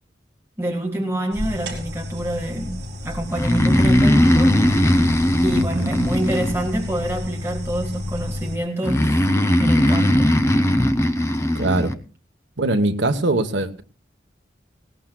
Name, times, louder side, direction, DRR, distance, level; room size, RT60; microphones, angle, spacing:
voice 1, 0.6-4.6 5.4-9.2 9.6-10.3, right 1 dB, 15° right, 0 dB, 1.7 m, -27 dB
sound 1, 1.3-8.6, left 1 dB, 65° right, 3.7 m, -31 dB
Breathing, 3.3-7.0 8.8-11.9, left 1 dB, 15° left, 0.6 m, -18 dB
voice 2, 5.5-5.9 11.5-11.9 12.6-13.8, right 2 dB, 80° right, 9 dB, 1.1 m, -22 dB
19.5 x 17.5 x 2.3 m, 0.37 s
head